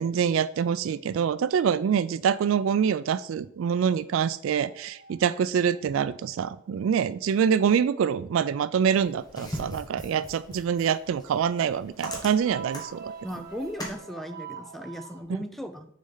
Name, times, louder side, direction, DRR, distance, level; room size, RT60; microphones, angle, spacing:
voice 1, 0.0-13.1, right 7 dB, 75° right, 15 dB, 0.3 m, -25 dB
sound 1, 4.4-6.4 9.3-9.4 10.8-11.0 11.4-11.5 12.0-15.2, right 6 dB, 50° right, 1.8 m, -43 dB
sound 2, 8.9-14.0, left 1 dB, 20° left, 1.2 m, -41 dB
voice 2, 13.2-15.9, equal, ahead, 8 dB, 0.4 m, -37 dB
6.3 x 4.2 x 3.9 m, 0.67 s
head